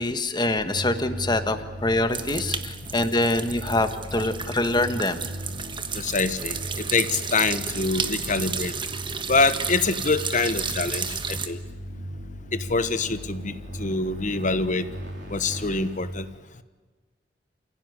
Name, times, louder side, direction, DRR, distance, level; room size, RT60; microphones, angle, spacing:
voice 1, 0.0-5.2, left 2 dB, 25° left, 9 dB, 1.5 m, -25 dB
sound 1, 0.7-16.0, equal, 75° right, 5.1 m, -38 dB
sound 2, 2.1-11.5, right 6 dB, 30° right, 1.4 m, -32 dB
voice 2, 5.9-8.7 9.3-11.6 12.7-14.9 15.3-16.3, left 3 dB, 45° left, 12 dB, 1.2 m, -25 dB
29.0 x 16.5 x 9.7 m, 1.4 s
head